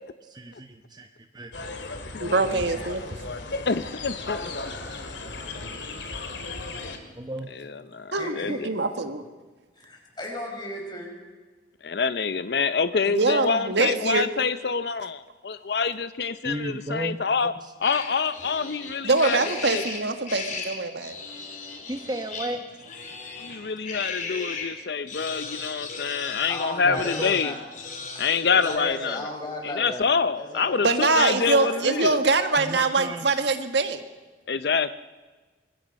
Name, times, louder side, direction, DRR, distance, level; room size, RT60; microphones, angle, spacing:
voice 1, 0.2-1.1 1.3-1.5 7.2-7.5 16.4-17.7 21.9-22.6 26.8-27.4 32.6-33.2, right 1 dB, 25° right, 6 dB, 1.0 m, -34 dB
sound 1, 1.5-7.0, left 3 dB, 85° left, 2.4 m, -35 dB
voice 2, 2.2-3.0 8.1-9.2 13.0-14.3 19.0-21.1 30.8-34.0, right 3 dB, 75° right, 8 dB, 1.6 m, -23 dB
voice 3, 3.6-4.4 7.9-8.5 11.8-17.5 17.8-19.8 23.4-27.5 28.2-29.2 29.8-32.2 34.5-34.9, left 5 dB, 65° left, 13 dB, 0.6 m, -26 dB
voice 4, 4.6-5.4 8.2-8.9 9.7-11.1 23.4-23.7 26.5-27.6 28.5-30.9 31.5-32.1, left 1 dB, 25° left, 1 dB, 5.0 m, -36 dB
sound 2, 17.8-24.7 25.1-28.8, left 4 dB, 45° left, 3.4 m, -36 dB
25.0 x 21.0 x 5.3 m, 1.3 s
head